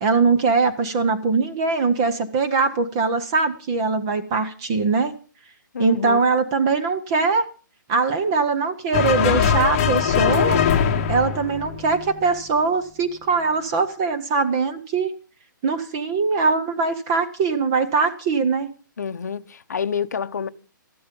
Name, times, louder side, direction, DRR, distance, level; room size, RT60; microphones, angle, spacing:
voice 1, 0.0-5.1 5.8-7.5 7.9-10.6 11.1-15.1 15.6-18.7, right 4 dB, 15° right, 0.6 m, -21 dB
voice 2, 5.7-6.3 19.0-20.5, left 7 dB, 55° left, 0.8 m, -28 dB
sound 1, 8.9-12.4, left 7 dB, 15° left, 1.0 m, -21 dB
14.0 x 11.5 x 5.2 m
hypercardioid pair, 180°, 11 cm